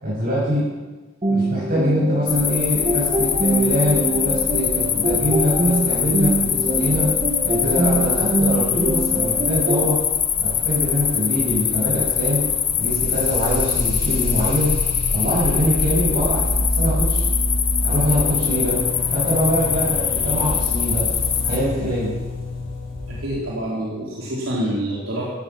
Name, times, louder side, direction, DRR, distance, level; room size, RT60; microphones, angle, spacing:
voice 1, 0.0-0.7 1.3-7.1 7.4-10.0 10.4-12.5 12.8-14.7 15.1-17.2 17.8-18.8 19.1-21.1 21.4-22.1, equal, 45° right, -7 dB, 6.6 m, -23 dB
sound 1, 1.2-9.9, right 2 dB, 25° right, 1.5 m, -24 dB
sound 2, 2.3-21.6, left 8 dB, 30° left, 1.0 m, -23 dB
sound 3, 12.7-23.4, left 1 dB, 45° left, 3.9 m, -27 dB
voice 2, 23.1-25.2, right 1 dB, 75° right, -6 dB, 3.9 m, -26 dB
14.5 x 13.5 x 6.2 m, 1.2 s
head